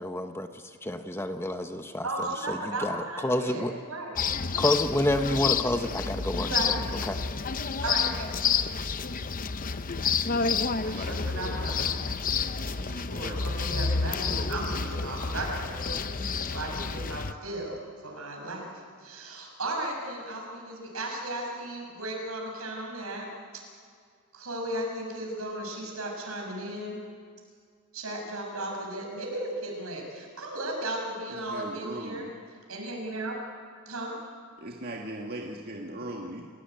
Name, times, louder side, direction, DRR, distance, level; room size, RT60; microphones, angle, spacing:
voice 1, 0.0-2.1 2.5-3.7 4.6-6.7 7.1-7.2, left 1 dB, 10° left, 7 dB, 0.9 m, -29 dB
voice 2, 2.0-4.2 6.4-6.7 7.8-8.6 10.8-12.1 12.6-18.7 19.0-23.3 24.3-27.0 27.9-32.3 32.7-33.4 33.9-34.1, right 1 dB, 80° right, 0 dB, 6.8 m, -35 dB
Sound Walk to UVic, 4.2-17.3, left 5 dB, 40° left, 0.7 m, -29 dB
voice 3, 31.3-32.3 34.6-36.5, right 1 dB, 45° right, 0 dB, 1.8 m, -38 dB
29.0 x 17.0 x 9.1 m, 2.1 s
head